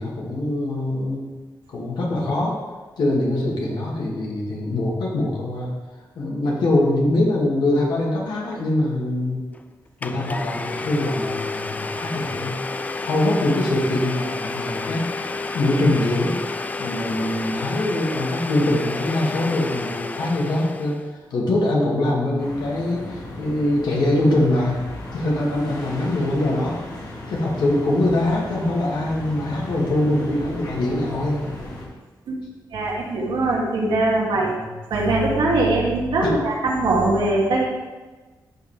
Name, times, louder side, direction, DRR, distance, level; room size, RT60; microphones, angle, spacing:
voice 1, 0.0-1.3 1.7-2.6 3.0-5.7 6.2-9.5 10.0-12.6 13.1-15.1 15.5-16.4 16.8-21.0 21.3-24.8 25.1-26.8 27.3-31.4 34.3-34.7 36.2-36.3, left 1 dB, 70° left, -3 dB, 2.2 m, -23 dB
Domestic sounds home sounds, 9.5-9.6 10.0-21.1, left 3 dB, 20° left, 0.4 m, -30 dB
sound 1, 22.4-31.9, left 2 dB, 55° left, 3.0 m, -36 dB
voice 2, 32.7-34.5 34.9-37.6, right 2 dB, 85° right, -3 dB, 2.2 m, -21 dB
13.5 x 5.6 x 3.4 m, 1.3 s
wide cardioid pair, 150°, 8 cm